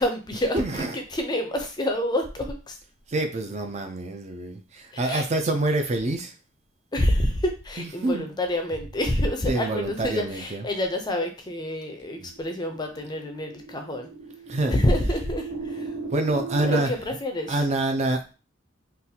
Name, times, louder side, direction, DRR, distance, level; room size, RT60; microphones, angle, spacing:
voice 1, 0.0-2.8 4.9-5.3 6.9-14.1 14.7-15.9 16.6-17.6, left 1 dB, 20° left, 5 dB, 0.5 m, -27 dB
voice 2, 0.5-1.0 3.1-6.3 7.8-8.3 9.5-10.6 14.5-14.8 16.1-16.9 17.5-18.3, right 2 dB, 35° right, 5 dB, 0.4 m, -26 dB
sound 1, 12.1-16.8, right 4 dB, 60° right, 1.1 m, -36 dB
3.9 x 2.4 x 2.7 m, 0.33 s
head